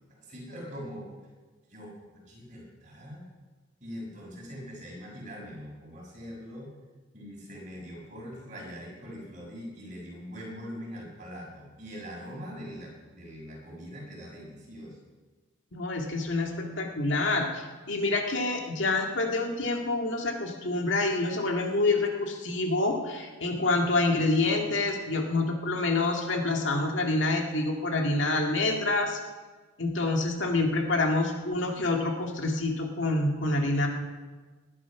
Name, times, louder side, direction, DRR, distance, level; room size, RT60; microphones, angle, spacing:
voice 1, 0.2-1.1 1.7-3.2 3.8-6.7 7.1-15.0, equal, 35° right, -2 dB, 6.0 m, -42 dB
voice 2, 15.7-29.2 29.8-33.9, left 2 dB, 65° left, 2 dB, 2.0 m, -27 dB
20.0 x 11.0 x 5.9 m, 1.3 s
head